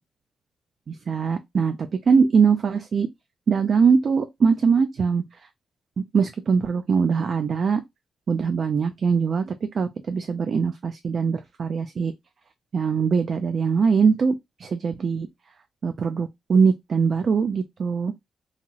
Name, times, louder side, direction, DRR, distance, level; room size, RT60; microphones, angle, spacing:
voice 1, 0.9-3.1 3.5-5.2 6.1-7.8 8.3-12.1 12.7-14.3 14.6-15.3 15.8-18.1, right 5 dB, 50° right, 0.3 m, -22 dB
2.8 x 2.8 x 2.3 m
cardioid pair, 105°, 0 cm